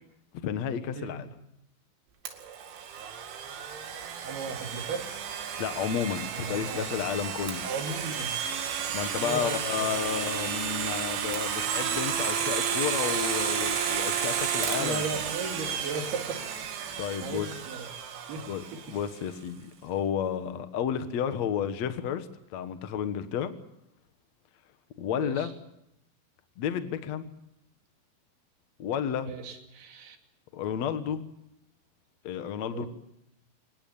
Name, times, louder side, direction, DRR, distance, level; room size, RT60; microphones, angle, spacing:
voice 1, 0.4-1.3 5.6-7.6 8.9-15.0 17.0-17.5 18.5-22.3 22.5-23.5 25.0-25.5 26.6-27.3 28.8-29.3 30.5-31.2 32.2-32.9, left 8 dB, 70° left, 10 dB, 1.6 m, -31 dB
Domestic sounds home sounds, 2.3-19.0, right 8 dB, 90° right, 4.7 m, -32 dB
voice 2, 4.2-5.1 6.3-7.0 7.6-8.4 9.2-10.0 14.3-17.9 18.3-18.4 18.7-19.0 25.1-25.5 29.1-30.2 32.7-32.9, right 4 dB, 60° right, 4 dB, 4.4 m, -37 dB
26.0 x 21.0 x 7.2 m, 0.80 s
omnidirectional pair, 5.3 m